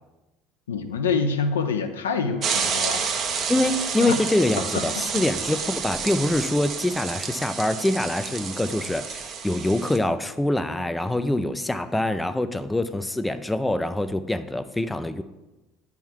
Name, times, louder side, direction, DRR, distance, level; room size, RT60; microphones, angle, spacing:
voice 1, 0.7-3.1 4.0-4.1 4.7-4.9 5.1-5.3, left 5 dB, 80° left, 7 dB, 0.6 m, -26 dB
sound 1, 2.4-10.0, right 6 dB, 40° right, 0.8 m, -30 dB
voice 2, 3.5-15.2, left 1 dB, 10° left, 11 dB, 0.4 m, -25 dB
10.0 x 3.6 x 4.5 m, 1.1 s
figure-of-eight pair, 65°, 0 cm